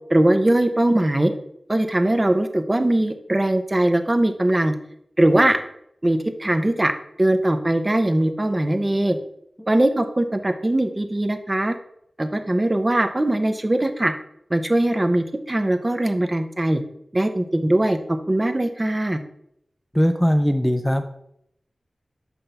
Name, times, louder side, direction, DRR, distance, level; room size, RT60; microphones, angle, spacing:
voice 1, 0.1-1.3 1.7-4.7 5.2-5.6 6.0-6.9 7.2-9.2 9.7-11.8 12.2-14.1 14.5-16.8 17.1-19.2, right 1 dB, 30° right, 7 dB, 0.7 m, -20 dB
voice 2, 19.9-21.1, equal, 5° left, 6 dB, 0.5 m, -20 dB
6.0 x 3.4 x 5.5 m, 0.74 s
wide cardioid pair, 60°, 0 cm